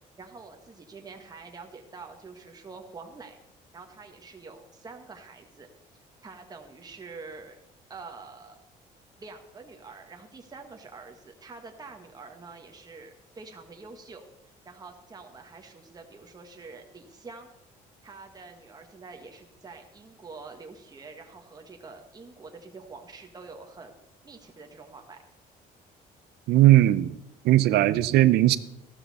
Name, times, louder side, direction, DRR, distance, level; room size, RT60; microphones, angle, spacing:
voice 1, 0.2-3.4 3.7-5.7 6.2-7.5 7.9-8.6 9.2-14.2 14.6-17.5 18.0-23.9 24.2-25.2, right 4 dB, 25° right, 3 dB, 1.5 m, -46 dB
voice 2, 26.5-27.2 27.4-28.6, right 15 dB, 75° right, 15 dB, 0.6 m, -18 dB
14.0 x 12.5 x 4.2 m, 0.85 s
cardioid pair, 110°, 17 cm